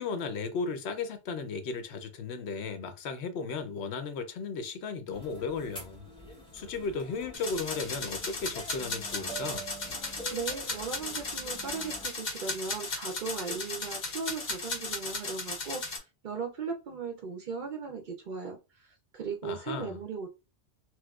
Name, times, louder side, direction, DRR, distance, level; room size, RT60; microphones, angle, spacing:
voice 1, 0.0-6.0 6.5-9.6 19.4-20.0, left 4 dB, 75° left, 0.9 m, -35 dB
sound 1, 5.1-12.1, right 2 dB, 5° left, 0.7 m, -46 dB
sound 2, 7.3-16.0, left 3 dB, 45° left, 0.9 m, -36 dB
voice 2, 10.3-18.9 19.1-20.3, right 5 dB, 60° right, 0.6 m, -37 dB
4.5 x 2.0 x 2.3 m
omnidirectional pair, 1.1 m